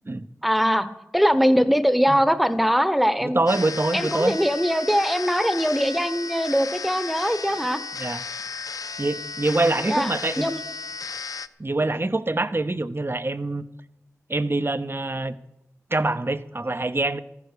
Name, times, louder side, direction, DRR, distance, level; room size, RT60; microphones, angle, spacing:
voice 1, 0.4-0.9 1.1-3.4 3.9-7.8 9.9-10.1 10.4-10.6, equal, ahead, 13 dB, 1.0 m, -21 dB
voice 2, 3.2-4.4 8.0-8.2 9.0-10.5 11.6-13.6 14.3-15.3 15.9-17.2, right 2 dB, 40° right, 13 dB, 0.8 m, -25 dB
sound 1, 3.5-11.5, left 4 dB, 90° left, 0.5 m, -34 dB
14.5 x 11.0 x 6.7 m, 0.89 s
wide cardioid pair, 45°, 6 cm